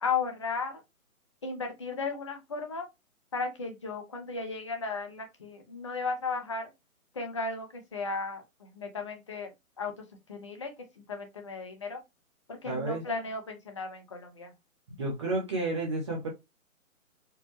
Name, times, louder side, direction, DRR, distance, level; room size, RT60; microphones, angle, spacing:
voice 1, 0.0-0.8 1.4-2.9 3.3-6.7 7.1-9.5 9.8-9.9 10.3-12.0 12.5-14.5, left 4 dB, 20° left, 0.5 m, -35 dB
voice 2, 12.6-13.0 15.0-16.3, right 2 dB, 20° right, 0.6 m, -31 dB
4.4 x 2.1 x 3.1 m
figure-of-eight pair, 145°, 42 cm